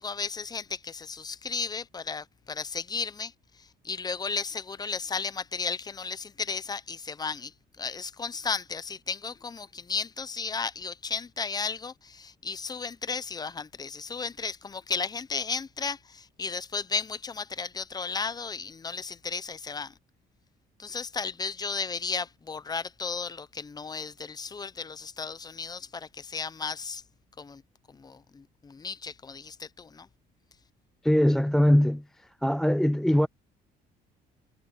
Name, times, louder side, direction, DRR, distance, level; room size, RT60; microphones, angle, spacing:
voice 1, 0.0-20.0 20.8-27.0 27.4-27.6 27.9-30.1, left 5 dB, 25° left, 0.8 m, -34 dB
voice 2, 31.0-32.0 32.4-33.3, equal, 5° left, 0.4 m, -21 dB
cardioid pair, 110°, 17 cm